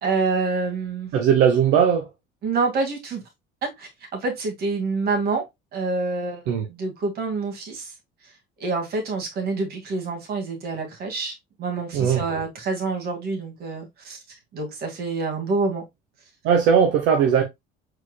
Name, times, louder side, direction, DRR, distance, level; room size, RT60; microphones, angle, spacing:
voice 1, 0.0-1.1 2.4-3.2 3.6-5.4 5.7-6.4 6.7-7.9 8.6-14.2 14.5-15.8, right 3 dB, 55° right, 2.1 m, -27 dB
voice 2, 1.1-2.1 6.5-6.7 11.9-12.2 16.4-17.4, right 7 dB, 80° right, 1.0 m, -18 dB
4.6 x 4.5 x 2.2 m
cardioid pair, 115°, 19 cm